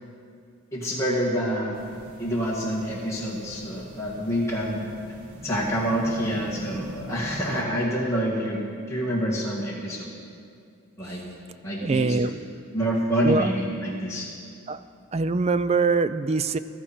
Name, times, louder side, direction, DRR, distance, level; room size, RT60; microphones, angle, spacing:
voice 1, 0.7-1.8 2.2-4.8 5.4-8.6 8.9-10.1 11.0-11.2 11.6-12.3 12.7-14.3, equal, 15° left, -6 dB, 2.0 m, -27 dB
sound 1, 1.7-7.6, right 1 dB, 90° right, 1.4 m, -43 dB
voice 2, 11.8-12.3 13.2-13.5 14.7-14.8 15.1-16.6, right 4 dB, 30° right, 13 dB, 0.3 m, -23 dB
16.0 x 13.5 x 4.3 m, 2.4 s
head